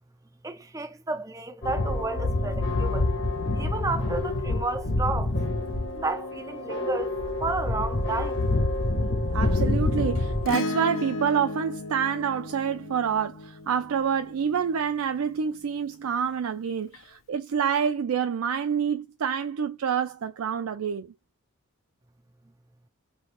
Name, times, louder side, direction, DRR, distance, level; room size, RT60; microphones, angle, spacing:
voice 1, 0.4-3.1 3.6-5.3 6.0-7.1 7.4-8.4, right 3 dB, 15° right, 0.4 m, -31 dB
sound 1, 1.6-10.5, left 2 dB, 55° left, 1.1 m, -27 dB
voice 2, 9.3-21.1, right 7 dB, 90° right, 0.4 m, -27 dB
Acoustic guitar / Strum, 10.5-15.1 16.9-17.0, left 3 dB, 70° left, 0.5 m, -35 dB
3.3 x 2.7 x 2.5 m
head